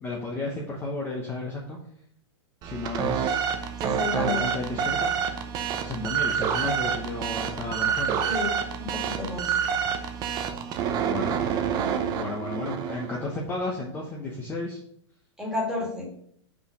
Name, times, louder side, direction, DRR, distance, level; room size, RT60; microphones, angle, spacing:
voice 1, 0.0-1.8 2.6-3.5 4.1-5.1 5.8-8.2 11.0-11.5 12.1-14.8, left 2 dB, 15° left, -1 dB, 0.9 m, -33 dB
sound 1, 2.6-13.2, right 7 dB, 25° right, 0.7 m, -28 dB
voice 2, 3.8-4.4 8.2-8.5 8.8-9.5 15.4-16.1, left 3 dB, 5° right, -3 dB, 2.3 m, -31 dB
5.6 x 4.9 x 5.0 m, 0.66 s
hypercardioid pair, 150°, 15 cm